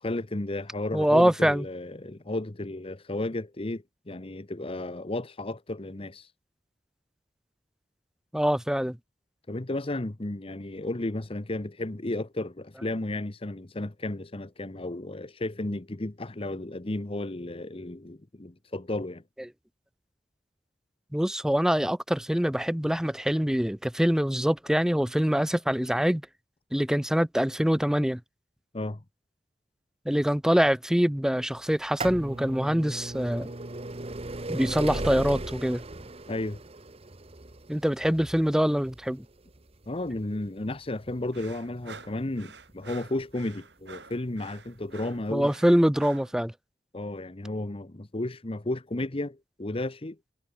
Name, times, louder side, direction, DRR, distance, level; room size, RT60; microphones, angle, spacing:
voice 1, 0.0-6.3 9.5-19.2 28.7-29.0 36.3-36.6 39.9-45.5 46.9-50.2, left 2 dB, 35° left, 1.0 m, -33 dB
voice 2, 0.9-1.6 8.3-9.0 21.1-26.2 26.7-28.2 30.1-33.5 34.5-35.8 37.7-39.2 45.3-46.5, equal, 5° right, 0.5 m, -24 dB
sound 1, 31.7-43.3 44.1-44.2 45.2-45.3 45.5-45.6, right 2 dB, 35° right, 1.3 m, -38 dB
sound 2, 41.3-46.4, right 4 dB, 75° right, 3.5 m, -48 dB
head